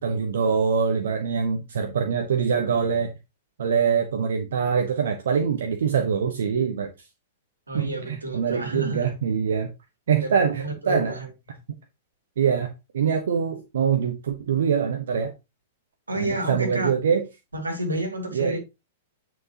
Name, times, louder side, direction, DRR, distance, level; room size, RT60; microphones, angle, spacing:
voice 1, 0.0-3.1 3.6-6.9 7.7-9.7 10.1-11.2 12.4-12.7 12.9-15.3 16.2-17.2 18.3-18.6, right 6 dB, 60° right, 1.2 m, -24 dB
voice 2, 7.7-9.1 10.2-11.6 16.1-16.9 17.5-18.6, right 1 dB, 80° right, 2.6 m, -30 dB
9.5 x 6.1 x 2.9 m
figure-of-eight pair, 105°, 0 cm